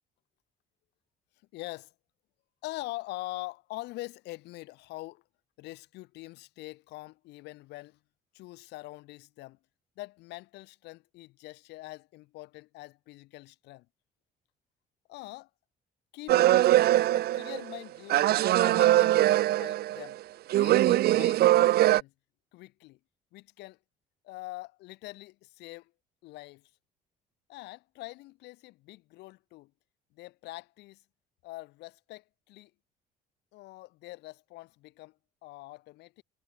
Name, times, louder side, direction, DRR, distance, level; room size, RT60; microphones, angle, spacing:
voice 1, 1.5-1.9 2.6-5.2 5.6-8.0 8.3-9.6 10.0-13.9 15.1-15.5 16.1-16.7 17.1-18.3 18.6-20.2 20.5-22.1 22.5-23.0 23.3-23.8 24.2-25.9 26.2-26.7 27.5-29.7 30.1-31.0 31.4-32.7 33.5-35.2 35.4-36.2, left 19 dB, 90° left, 4.5 m, -44 dB
sound 1, 16.3-17.8 18.1-20.1 20.5-22.0, right 14 dB, 70° right, 1.2 m, -22 dB
cardioid pair, 110°, 17 cm